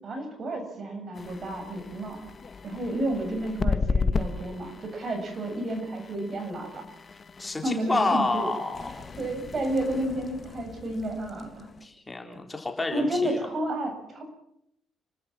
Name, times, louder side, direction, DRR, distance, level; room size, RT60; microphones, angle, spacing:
voice 1, 0.0-2.2 2.6-6.8 7.6-8.5 9.2-11.7 12.9-14.2, right 1 dB, 45° right, 5 dB, 7.1 m, -31 dB
sound 1, 1.1-11.9, left 4 dB, 40° left, 1.5 m, -35 dB
voice 2, 7.4-9.0 11.8-13.5, left 3 dB, 20° left, 3 dB, 3.9 m, -29 dB
30.0 x 13.0 x 7.3 m, 0.79 s
cardioid pair, 90°, 0 cm